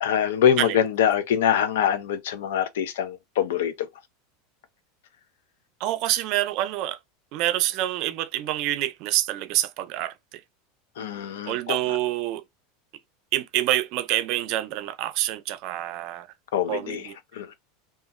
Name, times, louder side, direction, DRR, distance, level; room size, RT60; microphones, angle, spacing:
voice 1, 0.0-3.9 11.0-12.0 16.5-17.5, left 9 dB, 90° left, 0.5 m, -24 dB
voice 2, 5.8-7.0 7.3-10.1 11.5-12.4 13.3-16.3 16.7-17.1, right 14 dB, 40° right, 0.3 m, -26 dB
2.9 x 2.3 x 2.4 m
supercardioid pair, 175°, 0 cm